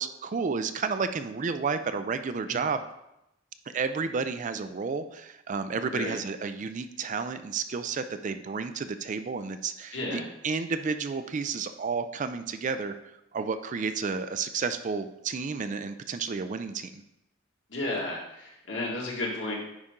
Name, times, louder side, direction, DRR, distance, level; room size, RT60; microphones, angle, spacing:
voice 1, 0.0-2.8 3.7-13.0 13.3-17.0, right 5 dB, 40° right, 10 dB, 0.4 m, -31 dB
voice 2, 9.9-10.2 17.7-19.5, left 2 dB, 65° left, -2 dB, 1.9 m, -32 dB
9.7 x 4.2 x 3.7 m, 0.86 s
head